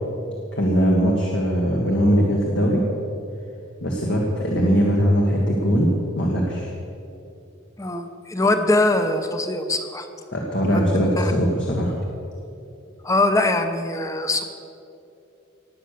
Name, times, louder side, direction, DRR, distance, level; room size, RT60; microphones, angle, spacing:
voice 1, 0.5-2.9 3.8-6.7 10.3-12.0, equal, 60° left, -2 dB, 1.8 m, -20 dB
voice 2, 7.8-10.1 10.7-11.3 13.0-14.4, left 2 dB, 15° left, 7 dB, 0.9 m, -22 dB
19.0 x 8.1 x 6.8 m, 2.7 s
head